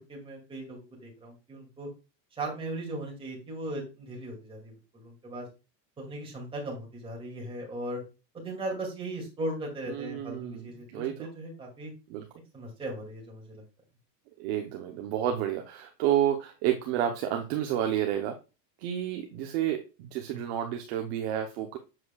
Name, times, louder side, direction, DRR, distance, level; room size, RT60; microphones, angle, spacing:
voice 1, 0.1-1.9 2.4-5.5 6.0-8.0 8.3-11.9 12.5-13.6, right 1 dB, 10° right, -2 dB, 2.3 m, -38 dB
voice 2, 9.9-11.3 12.1-12.2 14.4-18.3 18.8-21.8, right 10 dB, 40° right, 4 dB, 0.8 m, -30 dB
7.7 x 6.4 x 2.3 m, 0.30 s
supercardioid pair, 175°, 50 cm